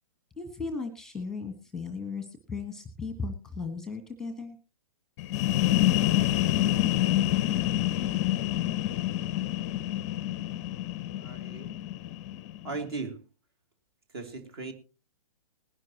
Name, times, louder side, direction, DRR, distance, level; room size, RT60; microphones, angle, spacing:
voice 1, 0.4-4.6, left 4 dB, 5° left, 1.4 m, -36 dB
sound 1, 5.2-12.8, left 14 dB, 25° left, 0.6 m, -27 dB
voice 2, 11.2-11.7 12.6-13.2 14.1-14.7, right 3 dB, 45° right, 2.7 m, -37 dB
20.0 x 11.5 x 2.9 m
figure-of-eight pair, 120°, 18 cm